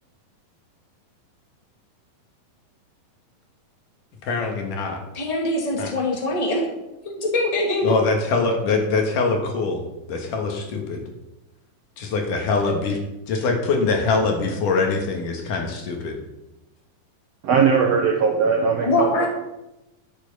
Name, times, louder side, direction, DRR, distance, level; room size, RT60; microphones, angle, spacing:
voice 1, 4.2-5.0 5.8-5.9 7.8-9.8 10.1-11.0 12.0-13.0 13.3-16.2, left 4 dB, 65° left, 2 dB, 3.0 m, -23 dB
voice 2, 5.1-6.7 7.0-7.9 18.8-19.3, left 2 dB, 15° left, 0 dB, 1.2 m, -23 dB
voice 3, 17.4-19.3, right 5 dB, 70° right, 2 dB, 1.5 m, -19 dB
12.5 x 7.4 x 5.6 m, 0.94 s
omnidirectional pair, 4.2 m